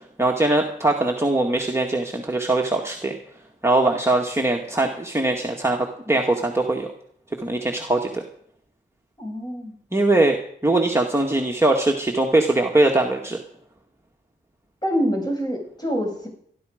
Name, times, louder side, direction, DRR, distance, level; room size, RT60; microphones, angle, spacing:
voice 1, 0.2-3.2 3.6-6.9 7.4-8.2 9.9-10.4 10.6-13.4, right 2 dB, 15° right, 0 dB, 1.9 m, -21 dB
voice 2, 9.2-9.8 14.8-16.3, equal, 20° left, 1 dB, 7.1 m, -25 dB
20.5 x 12.0 x 5.2 m, 0.64 s
wide cardioid pair, 65°, 19 cm